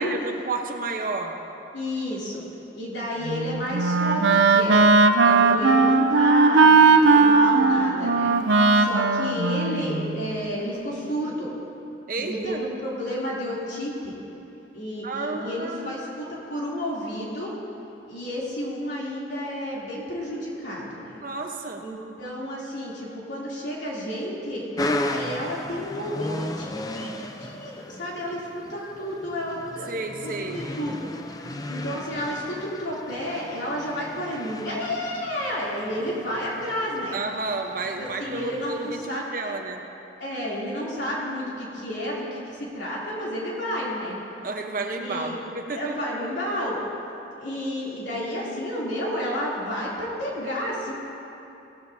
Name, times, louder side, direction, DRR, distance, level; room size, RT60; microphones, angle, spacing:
voice 1, 0.0-1.3 5.2-5.7 12.1-12.6 15.0-15.9 21.2-21.8 29.9-30.6 37.1-39.8 44.4-46.0, right 3 dB, 50° right, 3 dB, 0.9 m, -31 dB
voice 2, 1.7-2.4 2.7-4.9 5.2-8.3 8.7-11.5 12.2-14.1 14.7-17.5 18.0-21.2 21.8-24.7 25.1-29.9 30.2-31.1 31.7-37.2 38.0-39.5 40.2-44.2 45.0-45.4 45.7-46.8 47.4-50.9, equal, 80° left, -6 dB, 3.0 m, -31 dB
Wind instrument woodwind instrument, 3.3-10.4, right 3 dB, 85° right, 0.6 m, -18 dB
sound 1, 24.8-39.1, left 1 dB, 20° left, 0.5 m, -35 dB
16.0 x 13.5 x 2.7 m, 2.9 s
head